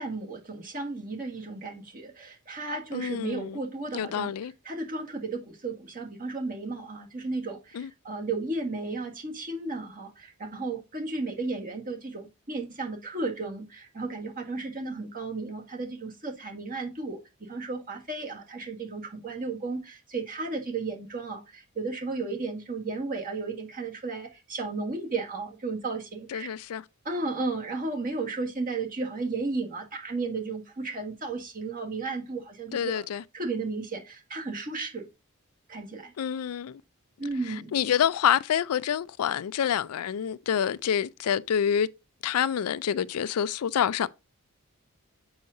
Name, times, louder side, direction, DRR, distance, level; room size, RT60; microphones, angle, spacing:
voice 1, 0.0-4.3 4.6-17.2 17.5-26.5 27.0-33.0 33.3-35.1 35.7-36.1 37.2-37.7, right 3 dB, 40° right, 1.7 m, -34 dB
voice 2, 2.9-3.6 3.9-4.5 7.7-7.9 26.3-26.8 32.7-33.2 36.2-36.8 37.5-41.9 42.2-44.1, left 8 dB, 80° left, 0.4 m, -27 dB
7.7 x 5.6 x 2.7 m
head